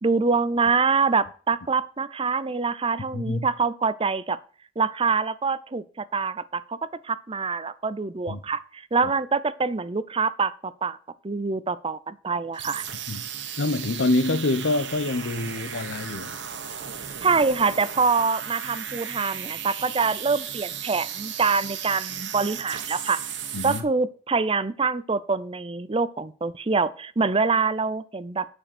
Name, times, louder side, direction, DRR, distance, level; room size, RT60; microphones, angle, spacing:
voice 1, 0.0-4.4 4.8-6.8 7.0-11.0 11.2-12.8 17.2-23.2 23.6-28.5, right 4 dB, 30° right, 0.6 m, -25 dB
voice 2, 3.1-3.5 8.3-8.4 13.1-13.2 13.6-16.4 23.5-23.8, left 2 dB, 85° left, 0.9 m, -26 dB
sound 1, 12.5-23.8, right 8 dB, 70° right, 1.5 m, -35 dB
9.4 x 6.4 x 6.0 m
head